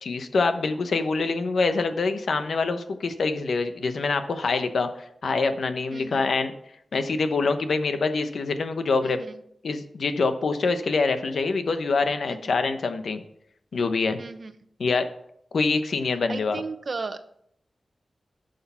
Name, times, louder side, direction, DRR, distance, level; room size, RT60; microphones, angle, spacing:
voice 1, 0.0-6.5 6.9-9.2 9.6-13.2 13.7-14.2 14.8-15.1 15.5-16.6, left 4 dB, 80° left, 8 dB, 1.0 m, -25 dB
voice 2, 5.9-6.3 9.0-9.4 12.3-12.5 14.2-14.5 16.3-17.2, right 4 dB, 50° right, 10 dB, 0.8 m, -35 dB
11.5 x 6.5 x 5.6 m, 0.72 s
wide cardioid pair, 130°, 0 cm